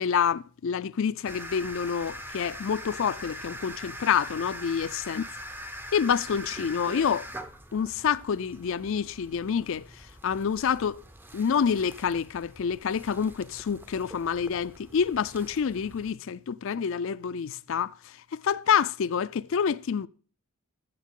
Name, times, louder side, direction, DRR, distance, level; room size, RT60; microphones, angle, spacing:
voice 1, 0.0-5.2 5.9-7.3 7.7-9.9 10.2-11.0 11.3-17.9 18.3-20.1, left 7 dB, 60° left, 0.4 m, -27 dB
sound 1, 1.3-16.1, equal, 10° right, 0.5 m, -43 dB
14.5 x 6.5 x 3.7 m
head